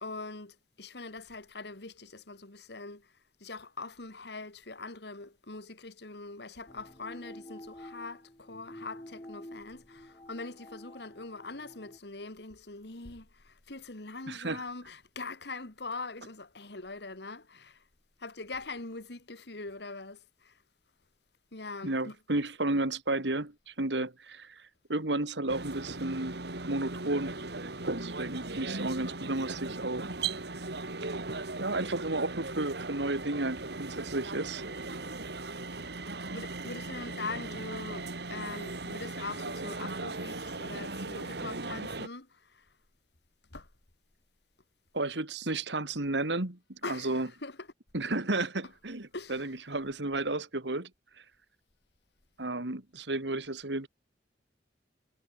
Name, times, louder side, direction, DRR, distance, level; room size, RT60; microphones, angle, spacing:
voice 1, 0.0-3.1 3.4-17.8 18.2-20.5 21.5-22.1 36.3-42.3 42.5-42.6 43.5-43.7 46.8-47.1 47.4-47.6 49.1-49.4, left 3 dB, 70° left, 2.5 m, -42 dB
sound 1, 6.7-12.0, left 1 dB, 25° left, 5.6 m, -49 dB
voice 2, 14.3-14.6 21.8-26.4 26.7-27.3 28.0-30.1 30.5-30.6 31.1-31.2 31.6-34.6 35.2-35.3 44.9-47.3 47.9-50.9 52.4-53.9, right 2 dB, 85° right, 2.4 m, -33 dB
sound 2, 25.5-42.1, right 3 dB, 70° right, 3.0 m, -38 dB
head